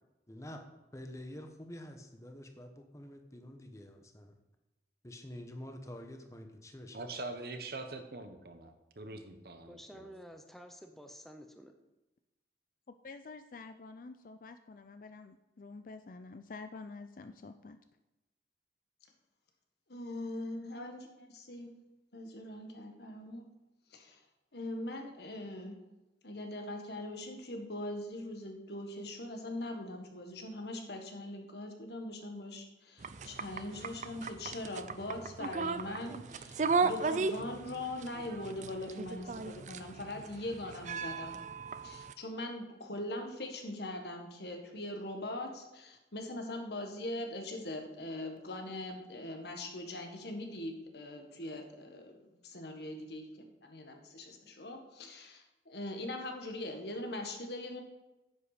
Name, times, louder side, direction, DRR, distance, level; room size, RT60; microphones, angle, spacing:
voice 1, 0.3-0.6 0.9-4.3 5.0-7.1, left 1 dB, 15° left, 5 dB, 1.0 m, -47 dB
voice 2, 6.9-10.1, right 2 dB, 60° right, 7 dB, 1.1 m, -43 dB
voice 3, 9.7-11.7, equal, ahead, 5 dB, 0.7 m, -51 dB
voice 4, 13.0-17.8, left 3 dB, 50° left, 9 dB, 0.4 m, -48 dB
voice 5, 19.9-21.7 22.1-23.4 23.9-24.2 24.5-25.7 26.2-41.3 41.8-57.8, left 1 dB, 70° left, 4 dB, 1.6 m, -41 dB
sound 1, 33.0-42.1, right 4 dB, 45° right, 0.4 m, -36 dB
9.8 x 7.9 x 5.0 m, 1.0 s
head